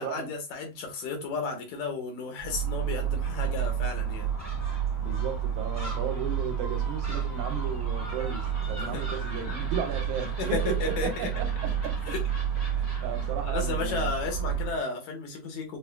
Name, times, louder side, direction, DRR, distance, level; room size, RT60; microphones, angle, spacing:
voice 1, 0.0-4.3 8.9-9.0 10.4-11.3 11.7-11.8 12.1-12.2 12.8-12.9 13.4-15.8, left 4 dB, 75° left, 2.4 m, -33 dB
Gull seagull, 2.4-14.8, right 8 dB, 10° left, 1.0 m, -30 dB
voice 2, 5.0-12.2 13.0-14.1, right 6 dB, 80° right, 2.1 m, -35 dB
6.4 x 2.2 x 2.2 m
omnidirectional pair, 3.5 m